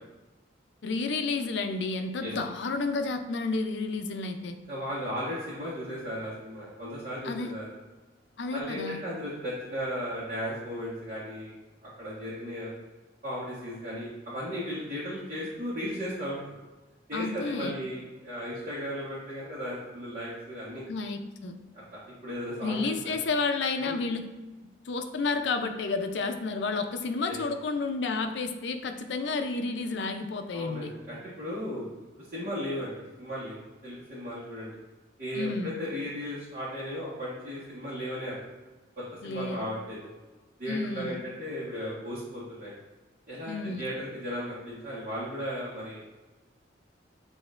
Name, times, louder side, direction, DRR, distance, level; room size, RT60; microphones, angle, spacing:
voice 1, 0.8-4.6 7.2-7.5 8.4-9.0 17.1-17.8 20.9-21.6 22.6-24.3 24.9-30.9 35.4-35.7 39.2-39.7 40.7-41.2 43.5-43.9, left 3 dB, 70° left, 7 dB, 0.5 m, -31 dB
voice 2, 4.7-7.7 8.5-11.5 11.8-12.7 13.2-16.6 17.1-20.8 21.7-23.1 23.8-24.0 27.2-27.3 30.5-32.0 32.3-34.7 35.2-38.4 39.0-40.1 40.6-42.7 43.3-46.2, equal, 45° right, -10 dB, 1.4 m, -36 dB
7.6 x 2.9 x 2.4 m, 1.2 s
head